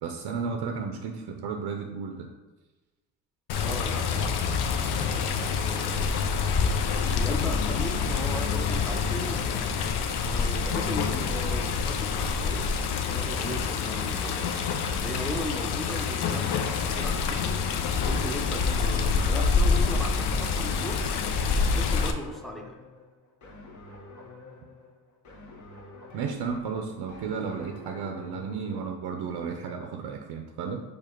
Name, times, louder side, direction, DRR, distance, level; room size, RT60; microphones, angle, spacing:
voice 1, 0.0-2.3 26.1-30.8, right 5 dB, 75° right, 3 dB, 0.6 m, -33 dB
Water, 3.5-22.1, left 5 dB, 70° left, 0.6 m, -27 dB
voice 2, 3.6-4.4 4.8-6.1 7.1-9.7 10.2-14.5 15.0-21.0 21.8-22.8, equal, ahead, 1 dB, 0.6 m, -38 dB
sound 1, 21.6-28.9, left 2 dB, 45° left, 1.2 m, -47 dB
4.9 x 2.4 x 4.4 m, 1.2 s
cardioid pair, 90°, 40 cm